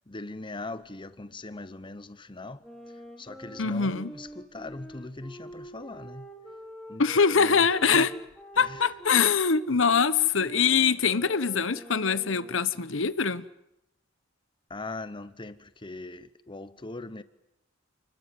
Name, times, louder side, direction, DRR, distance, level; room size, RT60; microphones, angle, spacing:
voice 1, 0.1-6.3 6.9-7.0 7.3-7.7 7.9-8.1 8.5-8.9 14.7-17.2, left 2 dB, 25° left, 1.0 m, -40 dB
sound 1, 2.6-9.3 9.8-12.7, equal, ahead, 5.0 m, -46 dB
voice 2, 3.6-4.1 7.0-8.1 8.6-13.4, left 5 dB, 65° left, 1.1 m, -23 dB
29.5 x 21.0 x 9.4 m
head